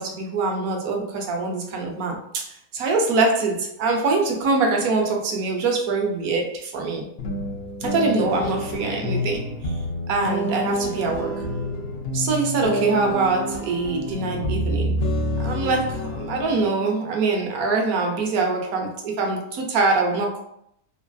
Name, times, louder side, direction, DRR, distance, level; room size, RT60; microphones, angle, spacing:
voice 1, 0.0-7.1 7.8-9.7 10.1-11.4 12.1-15.0 15.4-20.4, right 3 dB, 70° right, 1 dB, 1.1 m, -24 dB
sound 1, 7.2-16.7, equal, 75° left, 0.5 m, -28 dB
3.2 x 2.4 x 2.2 m, 0.71 s
omnidirectional pair, 1.6 m